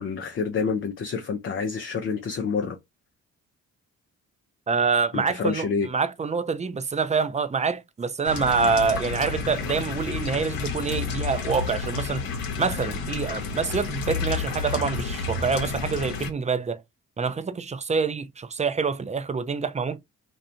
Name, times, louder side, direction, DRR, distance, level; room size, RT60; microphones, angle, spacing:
voice 1, 0.0-2.8 5.1-5.9, left 5 dB, 35° left, 0.5 m, -28 dB
voice 2, 4.7-12.2 12.6-16.8 17.2-20.0, right 5 dB, 20° right, 0.4 m, -26 dB
sound 1, 8.3-16.3, left 5 dB, 70° left, 0.8 m, -31 dB
2.4 x 2.2 x 2.7 m
hypercardioid pair, 45°, 37 cm